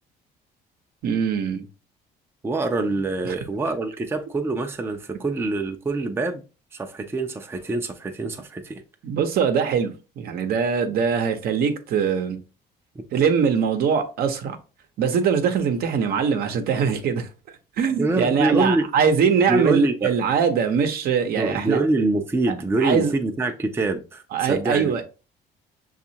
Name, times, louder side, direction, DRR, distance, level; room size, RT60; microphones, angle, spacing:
voice 1, 1.0-1.7 3.2-3.4 9.0-12.4 13.1-14.6 15.0-17.3 17.8-21.8 22.8-23.1 24.3-25.0, right 6 dB, 65° right, 0.7 m, -22 dB
voice 2, 2.4-6.4 6.7-8.8 18.0-18.9 19.5-20.1 21.4-24.9, right 2 dB, 15° right, 0.5 m, -25 dB
6.1 x 2.4 x 2.7 m
cardioid pair, 110°, 17 cm